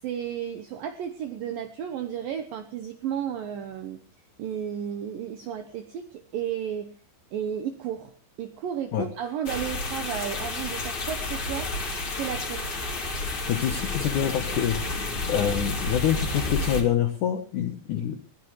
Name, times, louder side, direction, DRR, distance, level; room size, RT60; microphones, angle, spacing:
voice 1, 0.0-4.0 4.4-7.0 7.3-8.1 8.4-11.7 12.2-12.9, right 9 dB, 80° right, 8 dB, 2.0 m, -33 dB
sound 1, 9.5-16.8, left 2 dB, 30° left, 3.1 m, -30 dB
voice 2, 13.5-14.8 15.3-18.2, left 10 dB, 90° left, 7 dB, 1.7 m, -26 dB
21.0 x 16.0 x 3.2 m, 0.41 s
omnidirectional pair, 5.4 m